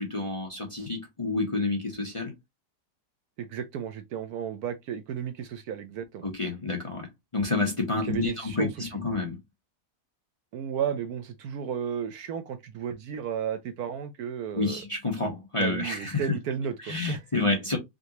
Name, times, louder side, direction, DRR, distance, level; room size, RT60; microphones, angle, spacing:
voice 1, 0.0-2.3 6.2-9.4 14.5-16.4 16.8-17.8, left 3 dB, 25° left, 0.8 m, -29 dB
voice 2, 3.4-6.3 7.9-8.9 10.5-14.8 15.6-17.2, right 8 dB, 70° right, 1.0 m, -33 dB
3.8 x 3.6 x 2.8 m
omnidirectional pair, 1.8 m